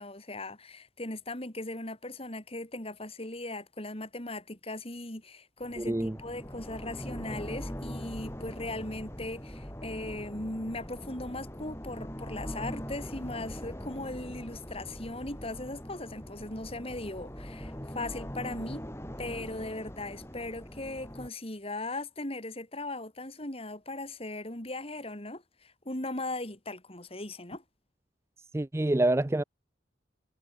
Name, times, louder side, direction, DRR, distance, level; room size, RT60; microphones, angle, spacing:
voice 1, 0.0-18.8 19.2-27.6, left 2 dB, 30° left, 3.6 m, -38 dB
sound 1, 5.6-21.3, equal, 15° left, 5.8 m, -41 dB
voice 2, 5.8-6.2 28.5-29.4, right 1 dB, 15° right, 0.4 m, -26 dB
head